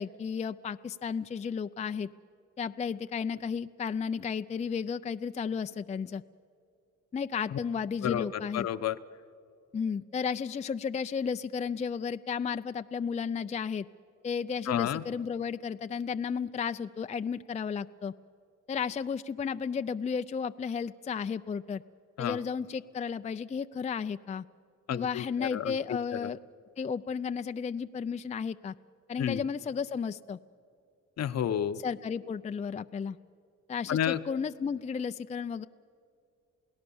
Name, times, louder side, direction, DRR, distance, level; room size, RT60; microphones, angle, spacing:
voice 1, 0.0-2.1 2.6-6.2 7.1-8.7 9.7-13.9 14.2-18.1 18.7-21.8 22.2-24.4 24.9-26.4 26.8-28.7 29.1-30.4 31.8-33.2 33.7-35.7, left 6 dB, 25° left, 10 dB, 0.4 m, -33 dB
voice 2, 8.0-9.0 14.7-15.0 22.2-22.4 24.9-25.8 26.2-26.3 29.2-29.4 31.2-31.8 33.9-34.2, left 10 dB, 60° left, 12 dB, 0.9 m, -31 dB
28.5 x 17.5 x 7.1 m, 2.5 s
cardioid pair, 90°, 30 cm